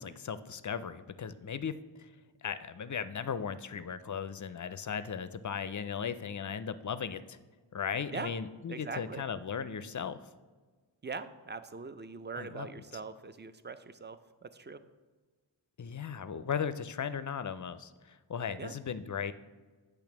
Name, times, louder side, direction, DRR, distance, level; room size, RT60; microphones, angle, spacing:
voice 1, 0.0-2.1 2.4-7.4 7.7-10.2 12.4-12.7 15.8-19.3, left 7 dB, 45° left, 13 dB, 0.4 m, -37 dB
voice 2, 8.7-9.2 11.0-14.8 18.6-18.8, right 4 dB, 25° right, 12 dB, 0.4 m, -42 dB
8.5 x 3.3 x 5.9 m, 1.4 s
wide cardioid pair, 40°, 45 cm